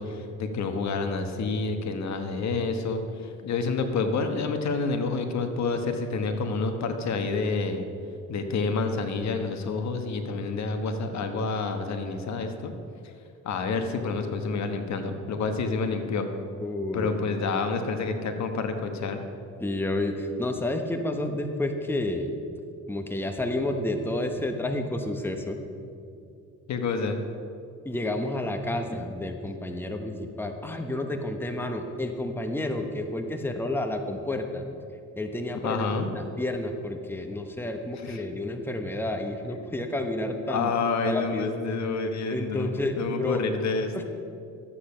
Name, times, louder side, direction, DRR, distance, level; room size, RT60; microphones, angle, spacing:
voice 1, 0.0-7.8 8.3-12.7 13.4-16.3 16.9-19.2 26.7-27.2 35.6-36.1 38.0-38.2 40.5-42.7 43.0-44.0, left 4 dB, 65° left, 6 dB, 1.2 m, -28 dB
voice 2, 16.6-17.1 19.6-22.3 22.9-25.6 27.8-34.6 35.2-40.7 41.1-41.5 42.3-43.5 43.9-44.0, left 1 dB, 5° left, 5 dB, 1.0 m, -30 dB
13.0 x 8.7 x 5.6 m, 2.5 s
cardioid pair, 90°, 30 cm